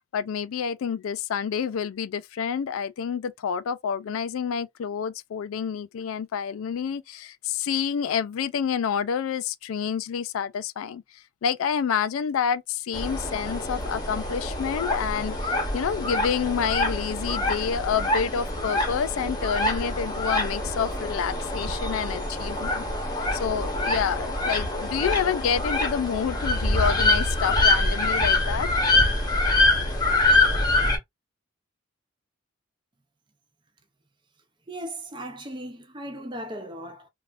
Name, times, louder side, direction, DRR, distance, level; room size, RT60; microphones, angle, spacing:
voice 1, 0.1-11.0 11.4-22.8 23.3-28.7, left 7 dB, 80° left, 0.3 m, -28 dB
sound 1, 12.9-31.0, left 2 dB, 20° left, 0.9 m, -25 dB
voice 2, 34.7-37.1, right 1 dB, 20° right, 0.5 m, -37 dB
3.3 x 2.4 x 2.4 m
head